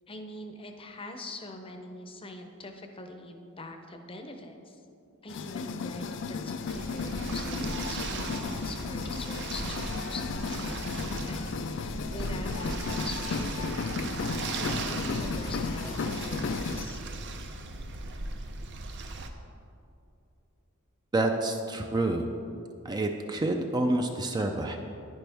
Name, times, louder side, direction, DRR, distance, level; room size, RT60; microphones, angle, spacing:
voice 1, 0.1-4.8 5.2-13.8 14.4-17.0, left 2 dB, 25° left, 5 dB, 0.7 m, -43 dB
sound 1, 5.3-16.8, left 4 dB, 55° left, 0.4 m, -34 dB
sound 2, 6.7-19.3, right 3 dB, 55° right, 0.7 m, -37 dB
voice 2, 21.1-22.3 22.8-24.8, right 2 dB, 20° right, 4 dB, 0.4 m, -28 dB
10.5 x 10.0 x 3.5 m, 2.7 s
head